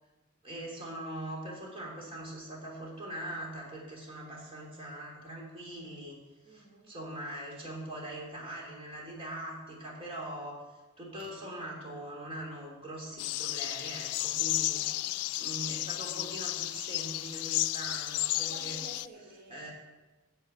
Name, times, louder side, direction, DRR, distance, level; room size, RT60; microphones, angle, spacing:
voice 1, 0.4-6.2 6.4-10.6 11.0-14.8 15.4-18.8 19.5-19.7, right 1 dB, 25° right, -3 dB, 3.0 m, -42 dB
voice 2, 6.4-6.9 14.5-15.2 18.3-19.7, right 1 dB, 45° right, -2 dB, 3.4 m, -51 dB
sound 1, 13.2-19.1, left 17 dB, 90° left, 0.3 m, -33 dB
11.5 x 5.6 x 8.8 m, 1.1 s
head